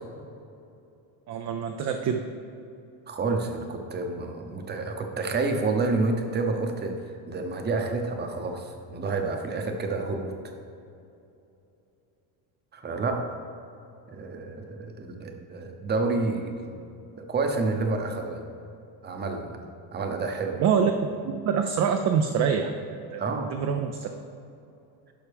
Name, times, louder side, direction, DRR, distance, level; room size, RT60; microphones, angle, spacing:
voice 1, 1.3-2.2 20.6-20.9 21.2-24.1, right 7 dB, 40° right, 5 dB, 0.4 m, -26 dB
voice 2, 3.1-7.0 7.3-10.3 12.7-13.2 14.1-16.8 17.3-18.5 19.0-19.6 19.9-20.6 23.2-23.6, right 3 dB, 20° right, 4 dB, 0.8 m, -29 dB
11.0 x 5.7 x 3.5 m, 2.7 s
cardioid pair, 140°, 46 cm